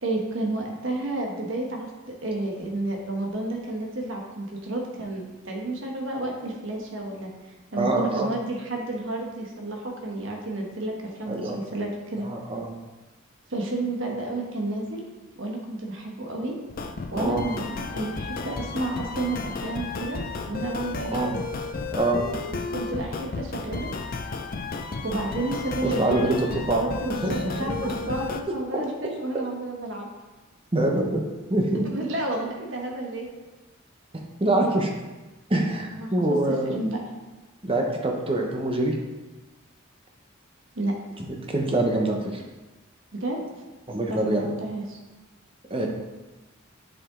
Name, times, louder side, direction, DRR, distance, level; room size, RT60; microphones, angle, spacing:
voice 1, 0.0-7.3 7.7-10.9 11.2-12.3 13.5-15.0 15.3-16.5 17.1-21.4 22.7-23.9 25.0-30.1 31.8-33.3 35.6-36.1 36.6-37.0 40.7-40.9 43.1-43.4 44.1-45.0, right 2 dB, 65° right, 0 dB, 1.2 m, -31 dB
voice 2, 7.8-8.3 11.3-11.6 12.2-12.7 17.1-17.5 21.1-21.3 21.9-22.2 25.8-27.9 28.7-28.8 30.7-31.2 31.5-31.8 34.1-34.9 35.5-36.8 37.6-38.9 41.2-42.4 43.9-44.5 45.7-45.9, right 2 dB, 25° right, 1 dB, 0.9 m, -25 dB
sound 1, 16.7-28.4, left 4 dB, 45° left, 0.5 m, -33 dB
7.7 x 5.1 x 3.8 m, 1.2 s
head